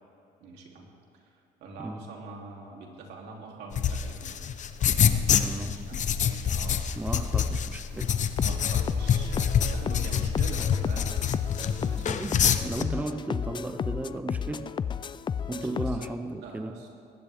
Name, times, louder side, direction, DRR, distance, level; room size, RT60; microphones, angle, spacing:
voice 1, 0.4-0.9 1.6-4.3 4.9-6.8 7.9-8.0 8.3-11.1 11.6-12.2 15.5-15.9 16.4-17.0, right 3 dB, 75° right, -1 dB, 3.1 m, -44 dB
voice 2, 1.8-2.2 5.3-6.1 6.9-8.2 12.0-14.7 15.5-16.9, right 2 dB, 10° right, 8 dB, 0.7 m, -35 dB
sound 1, 3.7-12.8, left 8 dB, 45° left, 0.8 m, -26 dB
sound 2, 8.4-16.1, left 7 dB, 30° left, 0.4 m, -33 dB
20.0 x 15.5 x 3.6 m, 3.0 s
cardioid pair, 110°, 17 cm